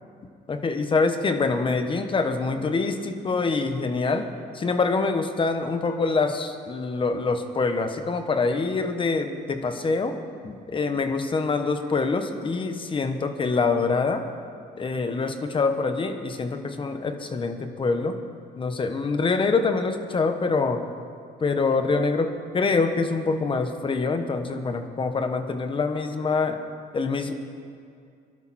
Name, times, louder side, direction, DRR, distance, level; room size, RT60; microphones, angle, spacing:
voice 1, 0.5-4.3 4.5-14.3 14.8-18.2 18.6-20.8 21.4-26.6 26.9-27.3, left 4 dB, 30° left, 8 dB, 1.3 m, -25 dB
23.0 x 12.0 x 4.4 m, 2.3 s
cardioid pair, 110°, 17 cm